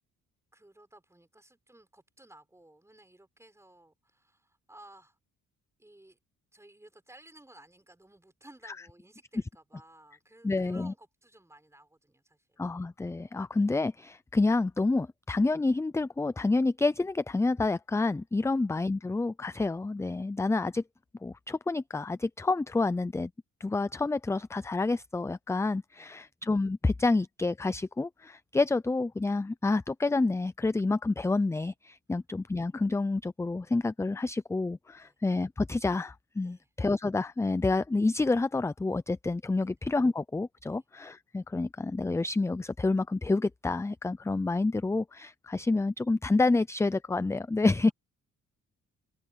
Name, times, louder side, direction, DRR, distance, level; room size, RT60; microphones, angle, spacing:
voice 1, 0.5-5.2 5.8-6.2 6.5-12.6 18.4-18.6 26.0-26.3 32.1-32.2 35.0-35.2 36.4-36.7 39.6-39.7 40.7-40.8 47.8-47.9, right 1 dB, 10° right, 6.6 m, -56 dB
voice 2, 10.4-10.9 12.6-20.8 21.2-23.3 23.6-47.9, left 3 dB, 10° left, 0.4 m, -28 dB
cardioid pair, 90°, 30 cm